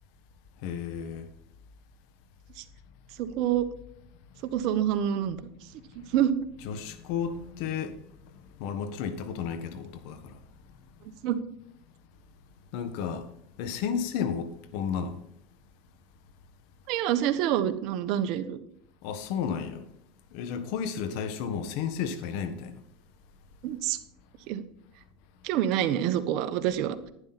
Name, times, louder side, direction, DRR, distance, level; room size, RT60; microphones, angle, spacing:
voice 1, 0.6-1.3 6.6-8.0 8.6-10.4 12.7-13.3 13.6-15.2 19.0-19.8 20.3-22.8, left 7 dB, 65° left, 1.5 m, -32 dB
voice 2, 3.2-3.7 4.5-5.4 5.9-6.4 11.2-11.4 16.9-18.6 23.6-24.0 24.5-24.6 25.4-27.1, right 10 dB, 60° right, 1.2 m, -27 dB
11.0 x 9.7 x 4.3 m
supercardioid pair, 120°, 0 cm